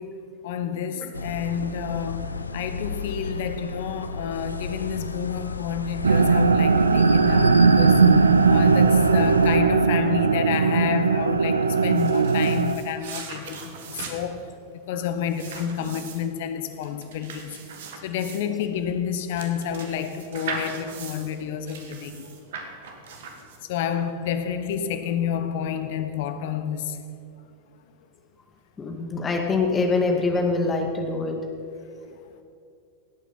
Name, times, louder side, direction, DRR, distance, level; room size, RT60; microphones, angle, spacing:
voice 1, 0.0-22.3 23.6-27.0 31.9-32.2, left 8 dB, 55° left, 1.0 m, -30 dB
sound 1, 1.1-9.6, left 3 dB, 80° left, 0.6 m, -33 dB
sound 2, 6.0-12.8, right 4 dB, 75° right, 0.5 m, -18 dB
sound 3, 11.7-23.9, right 5 dB, 55° right, 1.7 m, -39 dB
voice 2, 28.8-31.4, left 3 dB, 20° left, 1.9 m, -24 dB
18.0 x 8.4 x 5.7 m
figure-of-eight pair, 90°, 0 cm